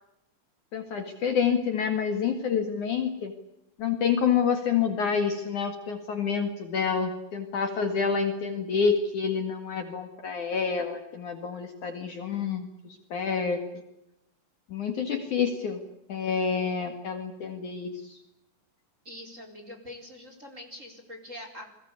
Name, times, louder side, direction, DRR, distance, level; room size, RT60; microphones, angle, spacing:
voice 1, 0.7-3.3 3.8-13.6 14.7-15.8 16.1-18.2, left 6 dB, 55° left, 6 dB, 3.0 m, -28 dB
voice 2, 19.0-21.6, left 1 dB, 20° right, 4 dB, 4.1 m, -44 dB
29.5 x 22.0 x 8.3 m, 0.84 s
omnidirectional pair, 4.9 m